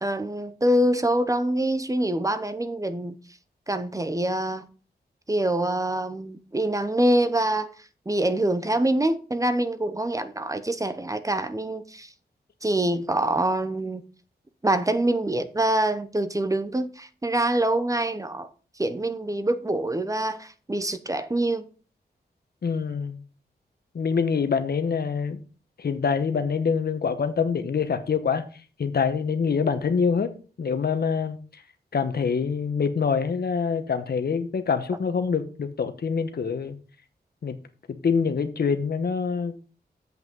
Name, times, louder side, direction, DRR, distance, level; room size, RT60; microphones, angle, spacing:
voice 1, 0.0-3.1 3.7-4.7 5.3-7.7 8.1-12.1 12.6-14.0 14.6-18.5 18.8-21.6, right 1 dB, 20° right, 0.8 m, -25 dB
voice 2, 22.6-23.2 23.9-25.4 25.8-28.5 28.8-30.3 30.6-31.4 31.9-36.8 37.4-37.5 37.9-39.7, left 6 dB, 70° left, 1.1 m, -25 dB
7.8 x 5.9 x 5.3 m
wide cardioid pair, 95°, 17 cm